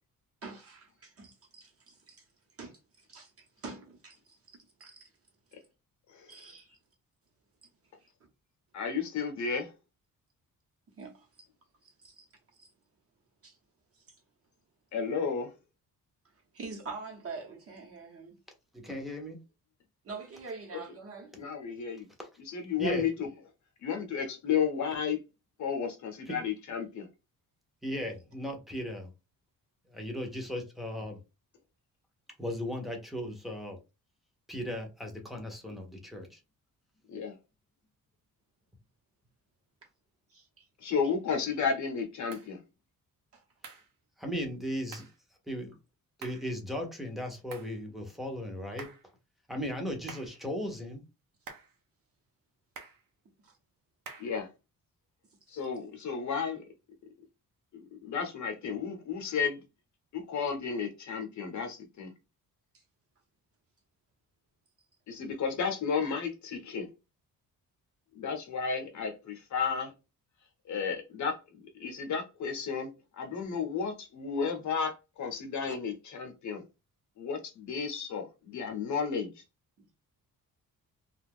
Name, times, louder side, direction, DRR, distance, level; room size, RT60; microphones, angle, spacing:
voice 1, 0.4-2.2 2.6-5.1 6.3-6.8 8.0-8.1 11.0-11.3 11.8-12.3 12.5-12.7 13.4-13.6 13.9-14.2 16.5-18.4 20.0-21.3 40.3-40.7 41.0-41.1 43.3-43.4 53.4-53.5 62.7-62.8 79.8-79.9, right 4 dB, 40° right, 0.9 m, -46 dB
voice 2, 8.7-9.7 14.9-15.5 20.7-20.8 21.4-22.1 22.5-23.3 23.8-25.2 25.6-27.1 37.1-37.4 40.8-42.6 54.2-54.5 55.5-56.6 57.7-59.6 60.1-62.1 65.1-66.9 68.1-69.9 70.7-76.7 77.2-79.4, left 6 dB, 55° left, 0.8 m, -33 dB
voice 3, 18.7-19.4 22.2-22.3 22.8-23.1 26.3-26.4 27.8-29.1 29.9-31.2 32.4-33.8 34.5-36.4 44.2-45.1 45.5-45.7 46.2-48.9 49.5-51.0, equal, ahead, 0.6 m, -36 dB
sound 1, 42.3-42.5 43.6-43.9 44.9-45.2 46.2-46.5 47.5-47.8 48.8-49.1 50.1-50.4 51.5-51.8 52.8-53.1 54.1-54.4, right 5 dB, 75° right, 0.8 m, -47 dB
2.5 x 2.3 x 3.5 m
wide cardioid pair, 170°, 34 cm